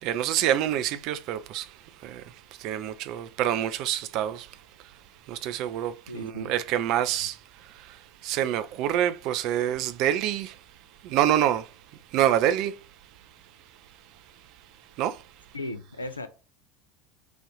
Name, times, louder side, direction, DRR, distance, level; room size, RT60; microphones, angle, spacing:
voice 1, 0.0-4.6 5.3-10.6 11.0-11.7 12.1-12.8 15.0-15.2, right 11 dB, 50° right, 0.4 m, -27 dB
voice 2, 6.1-6.5 15.5-16.3, left 2 dB, 80° left, 0.5 m, -36 dB
5.0 x 2.5 x 3.9 m
figure-of-eight pair, 70°, 0 cm